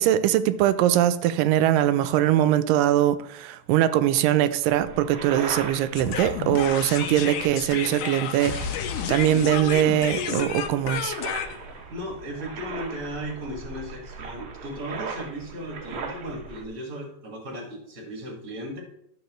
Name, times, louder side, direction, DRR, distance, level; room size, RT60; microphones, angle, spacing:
voice 1, 0.0-8.6 9.1-11.2, right 12 dB, 85° right, 2.2 m, -22 dB
sound 1, 4.6-16.6, right 5 dB, 70° right, 1.3 m, -39 dB
sound 2, 5.9-13.1, left 8 dB, 75° left, 2.2 m, -31 dB
voice 2, 11.9-18.8, equal, 30° right, 1.8 m, -36 dB
12.5 x 7.0 x 3.1 m
omnidirectional pair, 3.9 m